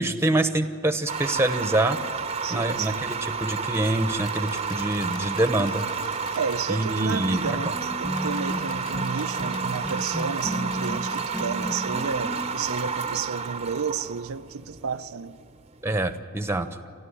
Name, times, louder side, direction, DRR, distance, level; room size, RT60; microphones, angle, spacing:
voice 1, 0.0-2.0 2.5-5.8 6.7-7.6 15.8-16.7, right 1 dB, 10° right, 1.0 m, -25 dB
sound 1, 1.1-16.0, right 5 dB, 30° right, 0.8 m, -31 dB
voice 2, 2.4-3.0 6.4-15.4, right 6 dB, 90° right, 0.6 m, -32 dB
sound 2, 4.1-6.6 8.1-11.5, left 3 dB, 40° left, 4.8 m, -46 dB
sound 3, 7.1-13.7, equal, 15° left, 1.7 m, -34 dB
30.0 x 13.0 x 9.9 m
head